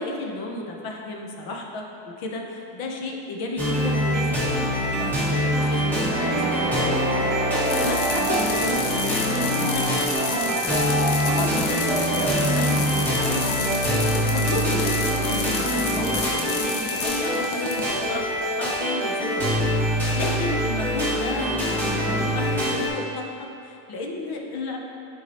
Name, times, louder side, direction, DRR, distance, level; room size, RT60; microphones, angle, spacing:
voice 1, 0.0-4.6 5.0-6.4 6.7-10.9 11.2-18.3 18.6-24.8, left 2 dB, 50° left, 1 dB, 0.9 m, -33 dB
sound 1, 3.6-22.9, equal, 5° left, 1.3 m, -24 dB
sound 2, 6.1-14.9, right 2 dB, 25° right, 0.6 m, -29 dB
sound 3, 7.6-18.4, left 5 dB, 85° left, 1.0 m, -31 dB
10.5 x 4.7 x 3.0 m, 2.6 s
cardioid pair, 170°, 47 cm